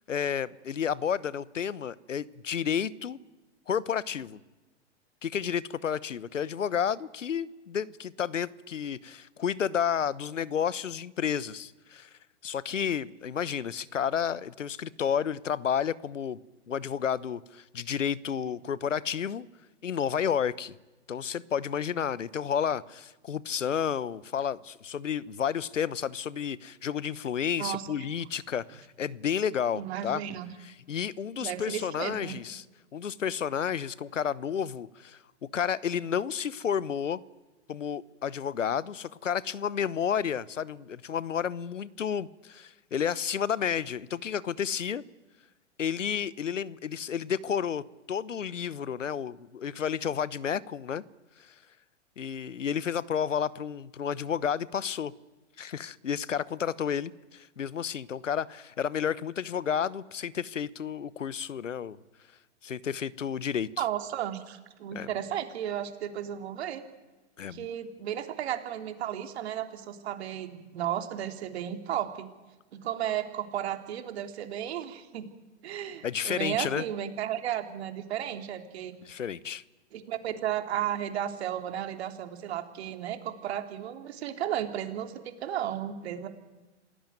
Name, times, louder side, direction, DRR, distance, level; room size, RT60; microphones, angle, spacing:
voice 1, 0.1-3.2 3.7-4.4 5.2-12.1 12.4-16.4 16.7-19.5 19.8-20.7 21.1-30.2 30.6-32.6 32.9-35.2 35.5-37.2 37.7-45.0 45.8-51.0 51.4-51.5 52.2-55.1 55.6-62.0 62.6-63.7 64.9-65.1 67.4-67.7 76.0-76.8 79.1-79.6, left 8 dB, 85° left, 20 dB, 1.0 m, -31 dB
voice 2, 29.7-30.5 31.4-32.3 63.8-66.8 67.5-72.3 72.7-75.3 75.6-79.0 79.9-86.3, right 10 dB, 60° right, 7 dB, 3.3 m, -34 dB
27.5 x 17.0 x 9.3 m, 1.2 s
hypercardioid pair, 120°, 36 cm